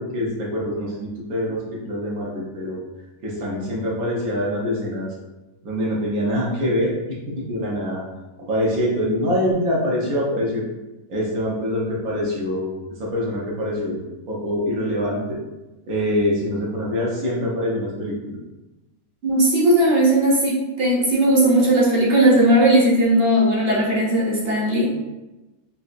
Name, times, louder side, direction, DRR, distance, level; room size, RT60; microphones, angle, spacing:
voice 1, 0.0-2.8 3.2-5.1 5.6-8.0 8.5-10.6 11.1-12.7 13.0-14.0 14.3-15.4 15.9-18.4, equal, 75° right, -4 dB, 1.3 m, -24 dB
voice 2, 19.2-25.0, right 1 dB, 50° right, -5 dB, 0.9 m, -17 dB
4.0 x 2.4 x 2.5 m, 1.1 s
omnidirectional pair, 1.6 m